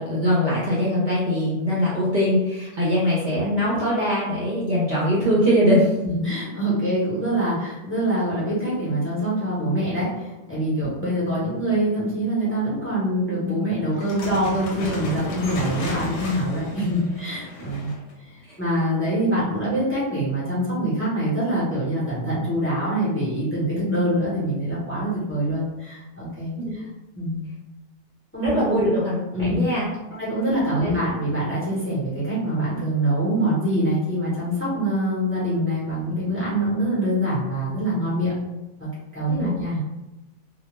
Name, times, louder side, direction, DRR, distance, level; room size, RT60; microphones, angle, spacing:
voice 1, 0.0-6.0 18.5-18.6 26.6-26.7 28.4-29.9 30.8-30.9 39.3-39.6, equal, 50° right, -7 dB, 0.7 m, -22 dB
voice 2, 6.0-17.9 18.6-26.5 27.2-27.4 28.3-28.5 29.3-29.7 30.2-38.3 38.8-39.8, right 1 dB, 10° left, -9 dB, 0.7 m, -24 dB
sound 1, 13.9-18.1, left 1 dB, 75° left, 0.9 m, -33 dB
2.2 x 2.1 x 3.1 m, 1.0 s
omnidirectional pair, 1.2 m